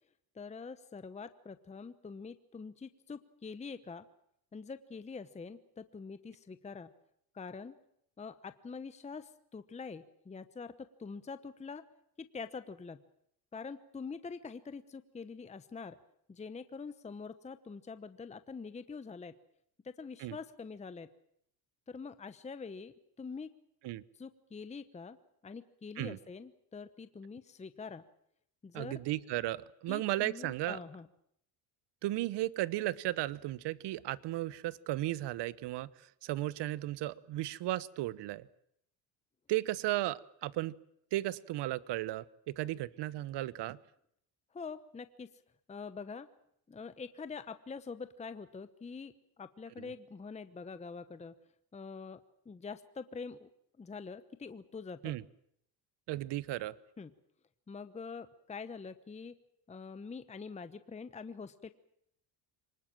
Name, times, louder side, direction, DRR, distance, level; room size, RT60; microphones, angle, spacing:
voice 1, 0.3-4.0 4.5-6.9 7.3-7.8 8.2-11.8 12.2-13.0 13.5-16.0 16.3-19.3 19.8-21.1 21.9-23.5 24.2-25.2 25.4-28.0 28.6-29.0 29.9-31.1 44.5-45.3 45.7-46.3 46.7-49.1 49.4-51.3 51.7-52.2 52.5-53.5 53.8-55.1 57.0-57.1 57.7-59.3 59.7-61.7, left 5 dB, 15° left, 12 dB, 0.9 m, -45 dB
voice 2, 28.7-30.8 32.0-35.9 36.2-38.5 39.5-40.7 41.1-43.8 49.8-49.9 55.0-55.2 56.1-56.7, right 16 dB, 60° right, 19 dB, 1.0 m, -35 dB
24.5 x 20.0 x 7.5 m, 0.71 s
cardioid pair, 110°, 48 cm